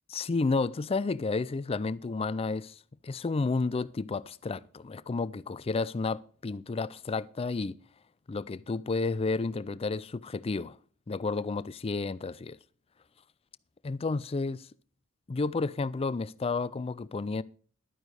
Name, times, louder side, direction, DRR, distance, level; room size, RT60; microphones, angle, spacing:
voice 1, 0.1-7.8 8.3-10.8 11.1-12.6 13.8-14.7 15.3-17.4, left 3 dB, 25° left, 0.4 m, -31 dB
12.0 x 9.2 x 4.8 m
head